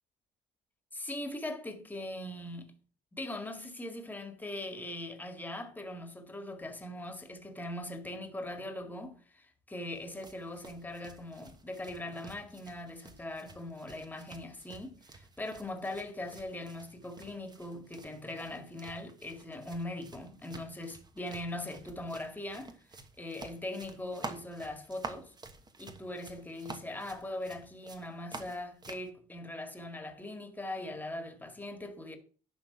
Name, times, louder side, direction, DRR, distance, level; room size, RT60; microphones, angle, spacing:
voice 1, 0.9-2.7 3.1-22.7 23.2-25.3 25.8-32.2, left 1 dB, 10° left, 1.8 m, -41 dB
sound 1, 9.9-29.1, right 3 dB, 25° right, 1.2 m, -50 dB
11.0 x 3.8 x 7.1 m
cardioid pair, 110°, 17 cm